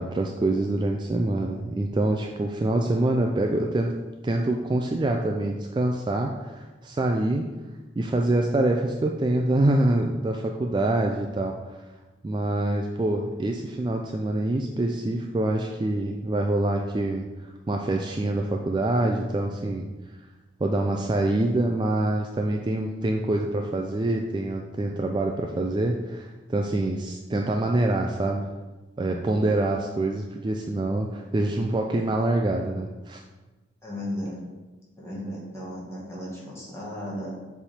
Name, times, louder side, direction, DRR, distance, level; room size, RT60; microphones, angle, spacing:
voice 1, 0.0-3.9 4.2-7.5 8.0-11.6 12.2-19.9 20.6-28.5 29.0-33.2, right 2 dB, 25° right, 2 dB, 0.3 m, -25 dB
voice 2, 33.8-34.5 35.0-37.3, equal, 15° left, -6 dB, 1.7 m, -35 dB
7.1 x 3.5 x 4.3 m, 1.2 s
head